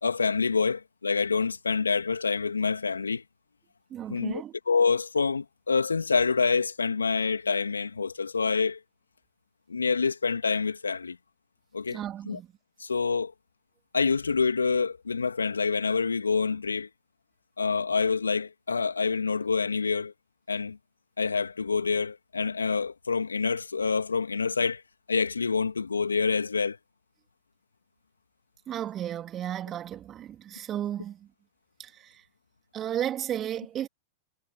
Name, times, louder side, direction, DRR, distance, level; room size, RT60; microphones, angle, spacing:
voice 1, 0.0-3.2 4.1-8.8 9.7-11.2 11.7-12.0 12.3-12.4 12.8-13.3 13.9-16.9 17.6-20.1 20.5-20.8 21.2-24.8 25.1-26.8, left 5 dB, 85° left, 2.8 m, -27 dB
voice 2, 3.9-4.5 11.9-12.5 28.7-31.3 31.8-32.2 32.7-33.9, right 11 dB, 30° right, 3.4 m, -34 dB
figure-of-eight pair, 100°, 0 cm